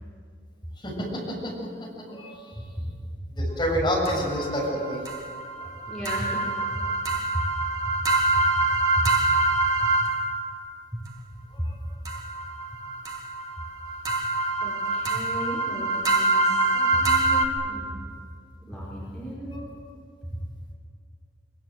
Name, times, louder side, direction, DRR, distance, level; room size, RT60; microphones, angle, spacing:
voice 1, 0.8-2.4 3.3-5.0 11.6-11.7 19.5-19.6, equal, 25° left, -3 dB, 7.1 m, -29 dB
voice 2, 2.8-3.5 5.8-6.4 6.7-6.8 7.3-7.4 8.0-9.1 10.9-11.0 11.6-11.7 14.6-18.0 18.6-19.6 20.2-20.3, equal, 5° left, -9 dB, 4.7 m, -34 dB
sound 1, 4.0-10.5 12.0-17.5, right 2 dB, 20° right, 2.0 m, -25 dB
24.0 x 23.5 x 7.8 m, 2.2 s
head